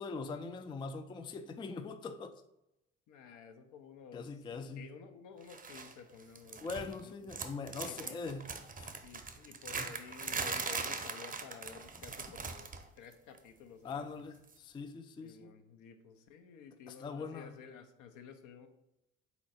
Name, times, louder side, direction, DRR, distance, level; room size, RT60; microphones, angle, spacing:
voice 1, 0.0-2.4 4.1-4.9 6.6-8.5 8.8-8.9 9.7-9.9 13.8-15.5 16.9-17.5, left 4 dB, 15° left, 0.3 m, -42 dB
voice 2, 3.1-6.7 7.0-7.1 7.9-8.2 9.0-14.3 15.2-18.7, left 6 dB, 65° left, 0.7 m, -53 dB
sound 1, 5.5-5.9 6.2-7.0 7.3-12.9 13.1-13.4 14.5-14.6, right 5 dB, 25° right, 0.6 m, -40 dB
3.9 x 2.9 x 4.1 m
hypercardioid pair, 55°, 33 cm